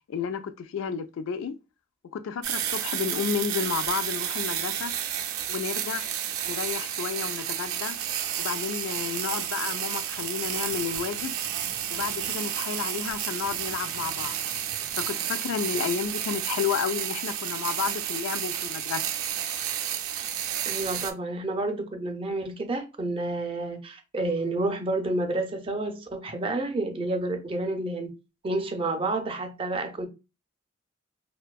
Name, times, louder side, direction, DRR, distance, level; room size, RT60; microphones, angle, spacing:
voice 1, 0.1-1.6 2.1-5.0 5.5-6.1 6.4-8.0 8.4-11.3 11.9-14.4 15.0-19.0, left 7 dB, 65° left, 0.3 m, -31 dB
firework mixdown, 2.4-21.1, right 10 dB, 85° right, 0.4 m, -31 dB
voice 2, 20.7-28.1 28.4-30.1, right 2 dB, 25° right, 0.4 m, -29 dB
2.6 x 2.2 x 2.2 m
head